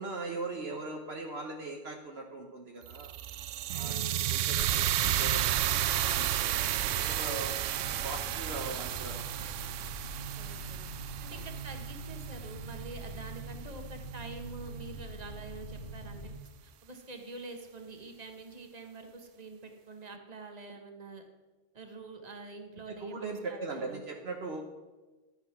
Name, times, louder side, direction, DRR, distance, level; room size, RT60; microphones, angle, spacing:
voice 1, 0.0-3.1 3.7-9.5 11.3-11.4 22.9-24.6, right 3 dB, 60° right, 2 dB, 1.3 m, -40 dB
sound 1, 2.9-13.0, right 12 dB, 90° right, 0.9 m, -32 dB
voice 2, 3.7-4.4 10.4-10.8 11.2-16.3 16.6-21.2 21.7-24.0, right 3 dB, 35° right, 4 dB, 1.5 m, -46 dB
sound 2, 7.7-16.4, right 2 dB, 65° left, 1.8 m, -43 dB
12.0 x 9.5 x 6.0 m, 1.2 s
omnidirectional pair, 1.2 m